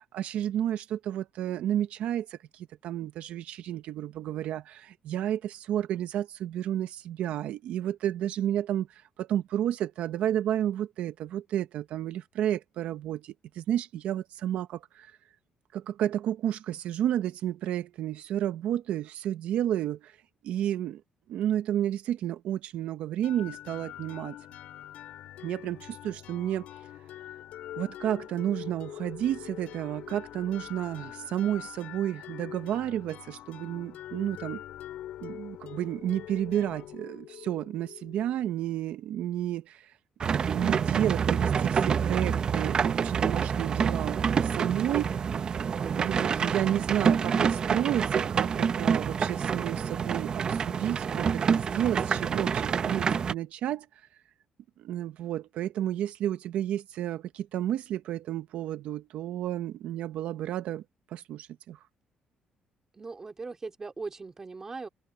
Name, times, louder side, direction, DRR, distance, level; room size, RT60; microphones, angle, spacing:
voice 1, 0.0-15.2 15.7-20.2 20.4-21.0 21.3-24.4 25.4-26.7 27.8-34.6 35.2-40.0 40.4-45.6 45.9-54.1 54.8-61.8, right 11 dB, 75° right, 0.8 m, -31 dB
sound 1, 23.2-38.8, left 12 dB, 80° left, 4.3 m, -44 dB
sound 2, 40.2-53.3, right 6 dB, 40° right, 0.7 m, -27 dB
voice 2, 62.9-64.9, right 4 dB, 25° right, 2.8 m, -39 dB
open air
cardioid pair, 135°, 2 cm